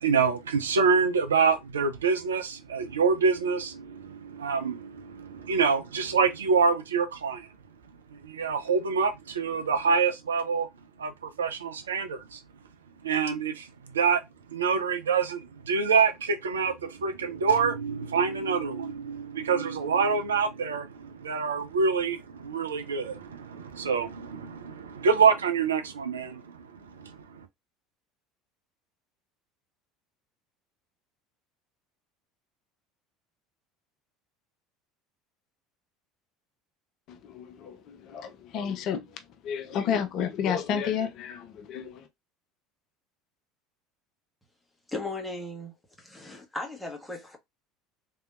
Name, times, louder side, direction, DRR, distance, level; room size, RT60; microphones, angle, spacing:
voice 1, 0.0-7.5 8.2-10.7 11.0-11.1 11.4-12.4 13.0-13.7 13.9-14.2 14.5-26.4 27.0-27.1, right 5 dB, 75° right, 0.5 m, -26 dB
voice 2, 37.1-39.1 39.4-42.1, left 7 dB, 45° left, 0.6 m, -31 dB
voice 3, 44.9-47.4, left 2 dB, ahead, 1.2 m, -37 dB
3.4 x 2.7 x 2.4 m
figure-of-eight pair, 65°, 0 cm